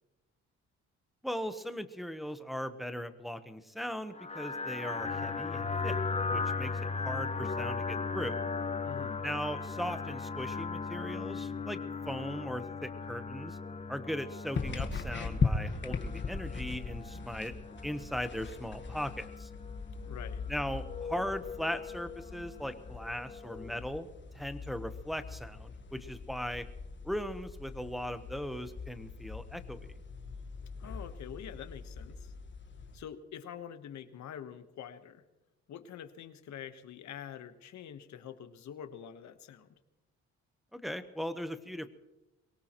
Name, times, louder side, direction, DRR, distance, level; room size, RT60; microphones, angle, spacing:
voice 1, 1.2-6.0 6.3-6.7 7.0-8.5 9.2-11.8 12.0-13.6 13.9-17.5 17.8-19.5 20.5-24.1 24.3-26.7 27.0-29.9 40.7-41.9, equal, ahead, 9 dB, 1.0 m, -38 dB
sound 1, 4.2-23.9, left 4 dB, 20° left, 0.9 m, -38 dB
voice 2, 8.8-9.3 20.1-20.4 30.8-32.3 32.9-35.2 35.7-39.8, left 9 dB, 65° left, 10 dB, 1.2 m, -46 dB
sound 2, 14.5-33.0, left 4 dB, 40° left, 1.5 m, -40 dB
23.5 x 18.0 x 3.0 m, 1.0 s
cardioid pair, 90°, 30 cm